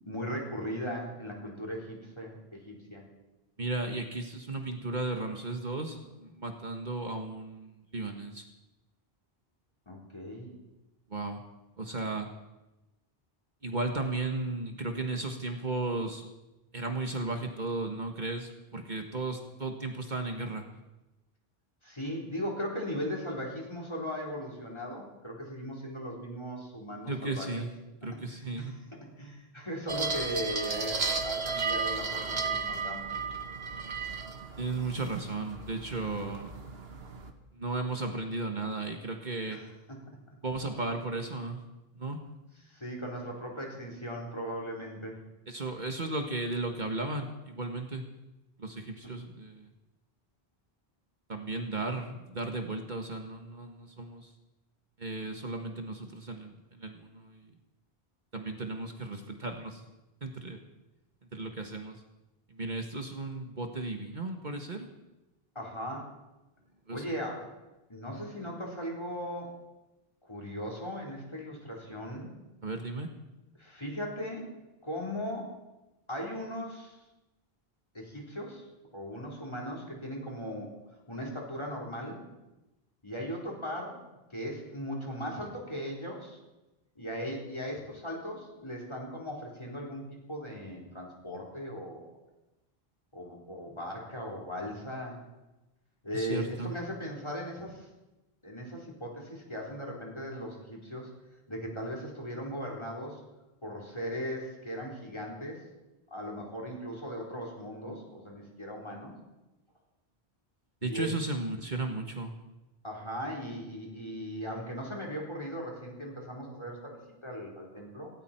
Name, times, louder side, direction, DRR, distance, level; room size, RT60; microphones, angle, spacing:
voice 1, 0.1-3.0 9.9-10.6 21.8-27.6 28.3-28.8 29.2-33.1 36.0-36.2 39.5-39.6 39.9-40.0 42.7-45.2 65.5-66.1 66.9-67.5 67.9-69.5 70.3-72.3 73.6-74.5 74.8-75.5 76.1-77.0 77.9-78.7 78.9-80.7 81.1-82.2 83.0-84.0 84.3-86.4 87.0-92.0 93.1-95.2 96.0-97.9 98.4-101.1 101.5-103.2 103.6-105.6 106.1-109.1 110.8-111.4 112.8-118.1, equal, 25° left, -1 dB, 4.1 m, -38 dB
voice 2, 3.6-8.5 11.1-11.4 11.8-12.3 13.6-16.3 16.7-20.6 27.1-27.7 28.0-28.8 34.6-36.5 37.5-39.6 40.4-41.6 42.0-42.2 45.5-48.0 48.6-49.7 51.3-54.3 55.0-57.5 58.3-59.8 60.2-60.6 61.3-62.0 62.5-64.9 66.9-67.0 72.6-73.1 96.1-96.7 110.8-112.3, right 2 dB, 50° right, 4 dB, 1.6 m, -35 dB
sound 1, 29.9-37.3, right 4 dB, 75° right, 1.6 m, -34 dB
18.0 x 18.0 x 4.5 m, 1.0 s
omnidirectional pair, 1.0 m